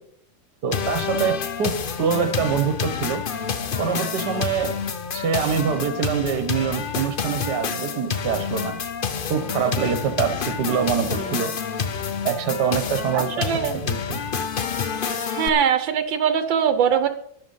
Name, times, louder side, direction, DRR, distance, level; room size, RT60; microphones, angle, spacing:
voice 1, 0.6-3.3 3.8-4.8 5.1-8.8 9.3-11.5 12.3-13.5 13.7-14.2, right 7 dB, 60° right, 10 dB, 1.7 m, -25 dB
sound 1, 0.7-15.5, left 6 dB, 65° left, 0.5 m, -28 dB
voice 2, 13.1-13.8 15.3-17.1, right 8 dB, 85° right, 10 dB, 1.6 m, -22 dB
11.5 x 11.5 x 5.5 m, 0.70 s
omnidirectional pair, 2.0 m